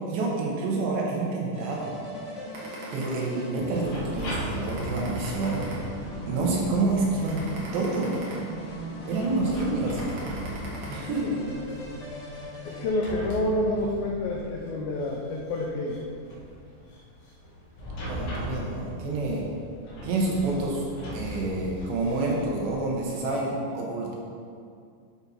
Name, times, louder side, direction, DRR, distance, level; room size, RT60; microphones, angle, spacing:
voice 1, 0.1-1.9 2.9-5.7 6.3-7.4 7.7-8.1 9.0-10.0 10.9-11.4 12.6-12.7 18.1-19.4 20.0-20.8 21.1-24.2, right 3 dB, 75° right, -3 dB, 3.4 m, -28 dB
sound 1, 1.5-12.9, equal, 50° left, 1.9 m, -39 dB
sound 2, 2.5-3.7 4.1-4.3 4.7-6.3 6.7-6.9 7.3-8.9 9.4-9.5 9.9-10.9, right 3 dB, 60° right, 1.6 m, -42 dB
sound 3, 3.5-23.3, equal, 65° left, 3.5 m, -39 dB
voice 2, 11.0-11.4 12.7-16.0, left 1 dB, 85° left, -2 dB, 2.0 m, -28 dB
12.5 x 4.4 x 4.3 m, 2.3 s
omnidirectional pair, 5.2 m